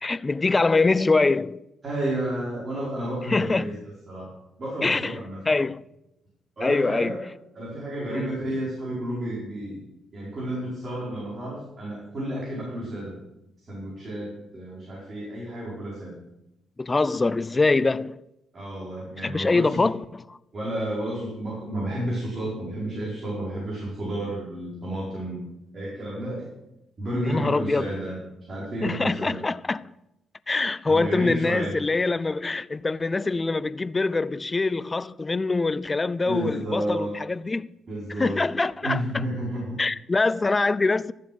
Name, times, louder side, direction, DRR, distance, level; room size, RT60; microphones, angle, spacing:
voice 1, 0.0-1.6 3.2-3.7 4.8-5.8 6.6-7.2 8.1-8.4 16.8-18.2 19.2-20.4 27.2-27.9 28.8-29.9 30.5-37.7 38.2-39.2 39.8-41.1, left 3 dB, 25° left, 0.3 m, -24 dB
voice 2, 1.8-3.8 4.1-4.3 4.6-5.4 6.6-7.2 7.5-9.8 10.1-13.1 13.7-16.2 18.5-19.8 20.5-25.4 25.7-26.4 27.0-28.2 28.5-29.4 30.9-31.7 36.3-37.2 37.9-38.4 38.8-39.7, right 1 dB, 40° right, 4.9 m, -31 dB
13.0 x 7.4 x 6.1 m
cardioid pair, 90°, 0 cm